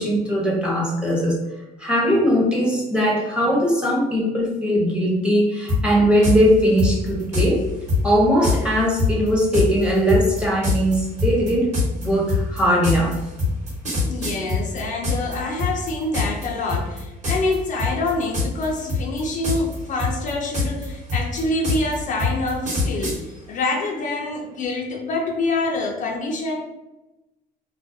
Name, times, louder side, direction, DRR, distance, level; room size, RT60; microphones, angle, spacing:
voice 1, 0.0-1.4 1.8-7.6 8.0-13.2, equal, 5° right, -5 dB, 0.7 m, -20 dB
sound 1, 5.7-5.8 6.2-6.4 6.8-7.5 7.9-8.0 8.4-8.6 9.0-15.3 15.6-16.4 16.7-17.0 17.2-17.5 17.8-18.6 18.9-19.7 20.0-23.2, left 3 dB, 45° right, 1.1 m, -22 dB
voice 2, 14.1-26.6, left 2 dB, 50° left, 0 dB, 0.4 m, -26 dB
2.3 x 2.1 x 2.5 m, 0.99 s
cardioid pair, 110°, 17 cm